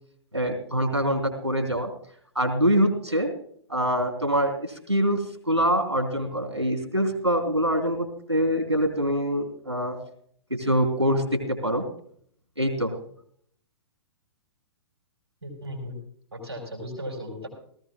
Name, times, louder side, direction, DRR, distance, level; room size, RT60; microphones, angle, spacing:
voice 1, 0.3-1.9 2.3-3.3 3.7-10.0 10.5-11.8 12.6-12.9, equal, 85° right, 4 dB, 3.4 m, -24 dB
voice 2, 15.4-16.0 16.3-17.5, equal, 70° right, 0 dB, 4.7 m, -36 dB
18.5 x 15.5 x 2.4 m, 0.62 s
figure-of-eight pair, 110°, 14 cm